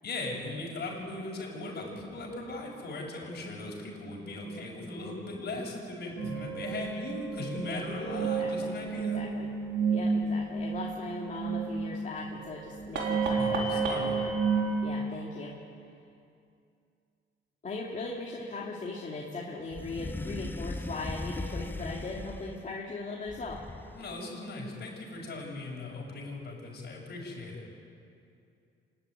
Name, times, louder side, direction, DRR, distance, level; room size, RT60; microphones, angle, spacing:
voice 1, 0.0-9.2 13.4-14.2 23.9-27.6, left 2 dB, 55° left, -2 dB, 7.4 m, -38 dB
sound 1, 6.2-14.7, right 5 dB, 70° right, 4.0 m, -31 dB
voice 2, 8.4-9.5 9.9-14.3 14.8-15.5 17.6-23.6, left 3 dB, 40° left, -3 dB, 2.7 m, -39 dB
sound 2, 19.7-22.7 23.3-24.2, left 2 dB, 10° left, 0.8 m, -38 dB
26.5 x 12.0 x 9.7 m, 2.5 s
cardioid pair, 90°, 20 cm